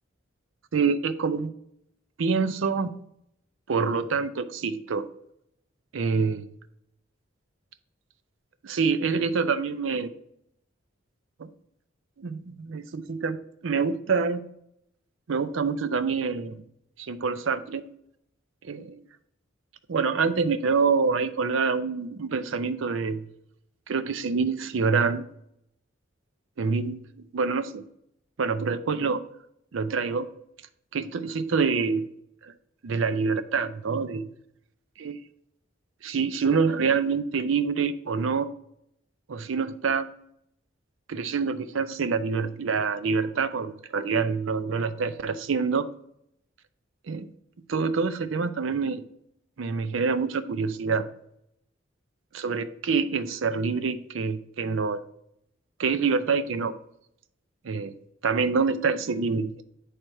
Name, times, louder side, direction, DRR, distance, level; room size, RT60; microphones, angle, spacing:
voice 1, 0.7-1.5 2.2-2.9 3.7-5.1 5.9-6.4 8.6-10.1 11.4-11.5 12.2-13.4 13.6-14.4 15.3-16.5 17.1-17.9 18.6-19.0 19.9-23.2 23.9-25.2 26.6-27.0 27.3-27.8 28.4-29.2 29.7-30.3 30.9-32.1 32.8-34.2 35.0-35.2 36.0-38.5 39.3-40.1 41.1-45.9 47.1-47.3 47.7-49.0 49.6-51.1 52.3-55.0 55.8-56.7 57.6-57.9 58.2-59.7, right 5 dB, 70° right, 12 dB, 0.5 m, -26 dB
9.7 x 3.3 x 4.5 m, 0.75 s
head